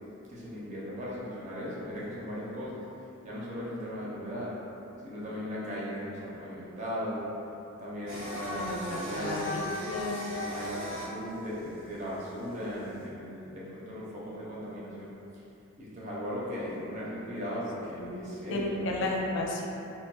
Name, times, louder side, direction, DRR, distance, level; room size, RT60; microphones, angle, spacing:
voice 1, 0.3-2.8 3.2-4.6 5.0-7.3 7.8-9.6 10.1-15.1 15.8-19.0, equal, 35° right, -7 dB, 0.6 m, -37 dB
Singing, 8.1-13.0, left 1 dB, 90° right, 0.9 m, -38 dB
voice 2, 8.5-10.2 18.0-19.7, left 2 dB, 65° left, -1 dB, 0.4 m, -33 dB
3.9 x 2.2 x 2.2 m, 2.8 s
head